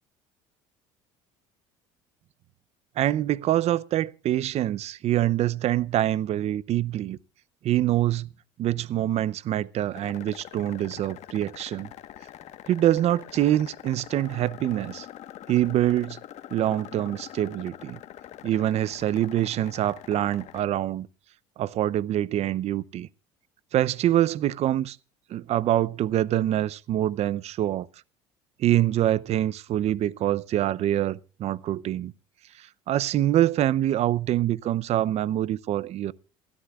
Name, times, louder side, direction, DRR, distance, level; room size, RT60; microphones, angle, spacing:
voice 1, 3.0-7.2 7.6-8.3 8.6-11.9 12.7-15.1 15.5-16.2 16.5-18.0 18.4-21.1 21.6-23.1 23.7-25.0 25.3-27.9 28.6-32.1 32.6-36.1, right 13 dB, 50° right, 0.6 m, -25 dB
sound 1, 9.9-20.6, left 12 dB, 55° left, 1.3 m, -44 dB
27.5 x 13.5 x 2.4 m
hypercardioid pair, 80°, 14 cm